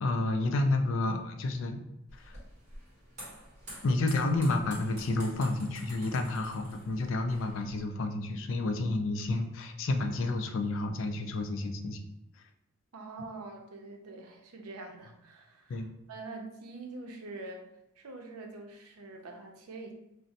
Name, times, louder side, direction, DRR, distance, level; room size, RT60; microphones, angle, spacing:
voice 1, 0.0-1.8 2.2-2.4 3.8-12.0 15.7-15.9, left 2 dB, 60° left, 6 dB, 0.3 m, -30 dB
sound 1, 2.1-7.8, equal, 35° right, 1.2 m, -49 dB
voice 2, 12.9-17.7 18.0-19.9, right 3 dB, 90° right, 3 dB, 0.6 m, -45 dB
2.5 x 2.1 x 3.9 m, 0.85 s
head